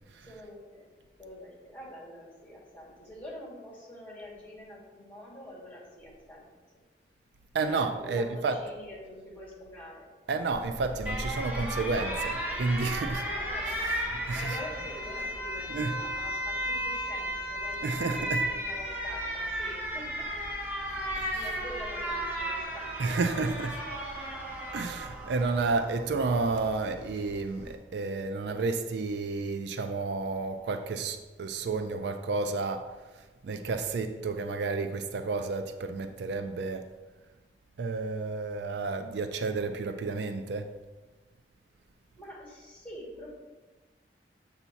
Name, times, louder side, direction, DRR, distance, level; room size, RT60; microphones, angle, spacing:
voice 1, 0.3-0.9 1.2-6.5 7.6-10.0 13.4-15.7 16.0-20.3 21.0-22.9 42.2-43.3, left 1 dB, 10° left, 2.0 m, -46 dB
voice 2, 7.5-8.6 10.3-13.3 14.3-14.5 15.7-16.2 17.8-18.4 21.2-21.3 23.0-23.8 24.7-32.9 33.4-36.9 37.8-40.7, right 3 dB, 70° right, 0.4 m, -31 dB
Alarm, 10.5-27.7, equal, 10° right, 1.0 m, -35 dB
7.1 x 2.8 x 5.6 m
head